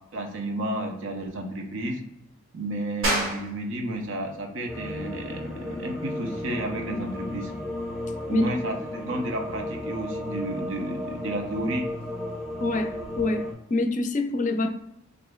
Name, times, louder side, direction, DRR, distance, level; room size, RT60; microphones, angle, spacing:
voice 1, 0.1-2.0 2.5-7.5 8.3-11.9, right 1 dB, 65° right, 3 dB, 0.7 m, -31 dB
sound 1, 3.0-13.3, right 1 dB, 80° right, 1.4 m, -37 dB
sound 2, 4.7-13.5, left 1 dB, ahead, 1.1 m, -34 dB
voice 2, 12.6-14.7, left 2 dB, 35° left, 6 dB, 0.4 m, -26 dB
6.3 x 2.5 x 2.3 m, 0.80 s
head